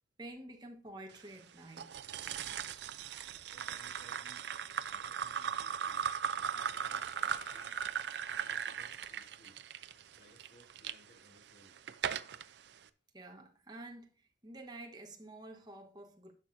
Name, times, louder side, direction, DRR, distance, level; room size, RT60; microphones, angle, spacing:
voice 1, 0.2-1.9 13.1-16.3, right 2 dB, 20° right, 1.1 m, -49 dB
sound 1, 1.8-10.9 11.5-12.4, right 8 dB, 65° right, 0.4 m, -38 dB
voice 2, 3.0-4.4 4.9-6.0 6.3-7.8 8.3-9.6 10.2-11.8, equal, 55° left, 2.8 m, -63 dB
Bicycle, 4.2-11.8 12.1-12.2, left 2 dB, 90° left, 2.3 m, -67 dB
11.0 x 6.1 x 2.6 m
head